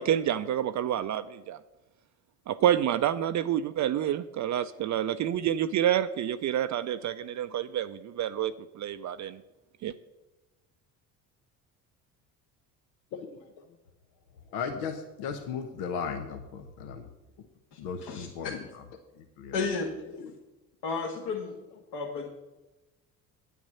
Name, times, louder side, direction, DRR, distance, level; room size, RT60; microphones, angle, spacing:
voice 1, 0.0-1.6 2.5-9.4 9.8-9.9, right 11 dB, 40° right, 11 dB, 0.5 m, -28 dB
voice 2, 13.1-13.7 14.5-17.1 17.8-18.8 19.2-19.6 20.1-20.3, left 6 dB, 80° left, 6 dB, 1.0 m, -37 dB
voice 3, 17.7-18.5 19.5-19.9 20.8-21.5 21.9-22.3, left 4 dB, 60° left, -1 dB, 1.6 m, -33 dB
9.3 x 9.1 x 5.5 m, 1.1 s
hypercardioid pair, 60°, 46 cm